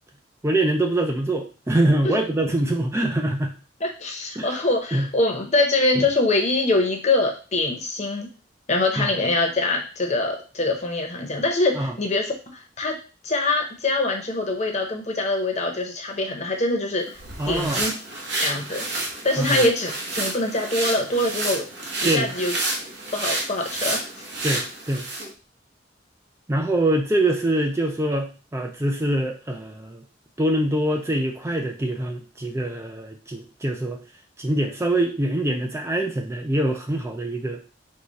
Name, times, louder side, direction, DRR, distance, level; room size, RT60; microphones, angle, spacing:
voice 1, 0.4-3.6 4.4-4.6 4.9-5.1 6.0-6.1 9.0-9.1 11.7-11.9 17.4-17.8 19.4-19.6 22.0-22.3 24.4-25.1 26.5-30.0 30.4-34.0 34.4-37.6, right 1 dB, 15° right, 3 dB, 0.4 m, -24 dB
voice 2, 3.8-8.3 8.7-12.3 12.8-13.0 13.2-17.1 17.5-17.9 18.4-18.8 19.2-21.6 22.0-22.5 23.1-24.1, left 2 dB, 40° left, 2 dB, 0.9 m, -24 dB
sound 1, 17.1-25.3, right 2 dB, 65° right, 1.1 m, -29 dB
4.7 x 2.3 x 4.0 m, 0.35 s
head